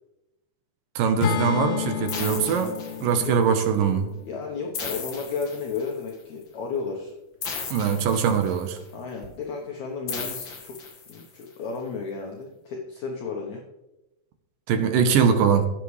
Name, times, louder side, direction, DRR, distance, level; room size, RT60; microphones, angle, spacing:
voice 1, 1.0-4.1 7.7-8.8 14.7-15.7, right 7 dB, 75° right, 7 dB, 2.4 m, -22 dB
Acoustic guitar / Strum, 1.2-5.4, left 9 dB, 90° left, 2.6 m, -32 dB
sound 1, 2.1-3.4 4.7-6.1 7.4-8.8 10.1-11.4, left 5 dB, 45° left, 1.7 m, -36 dB
voice 2, 4.3-7.1 8.9-10.8 11.1-13.6, left 5 dB, 65° left, 0 dB, 2.0 m, -33 dB
16.5 x 7.4 x 3.2 m, 0.97 s
omnidirectional pair, 4.1 m